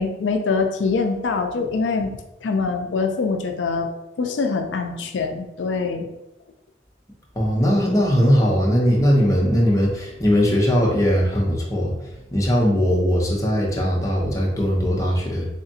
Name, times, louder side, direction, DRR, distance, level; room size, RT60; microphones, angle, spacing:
voice 1, 0.0-3.9 4.2-6.1, left 4 dB, 80° left, 5 dB, 0.4 m, -24 dB
voice 2, 7.4-11.9 12.3-15.5, equal, 20° left, -3 dB, 0.8 m, -19 dB
3.5 x 2.4 x 4.1 m, 0.93 s
head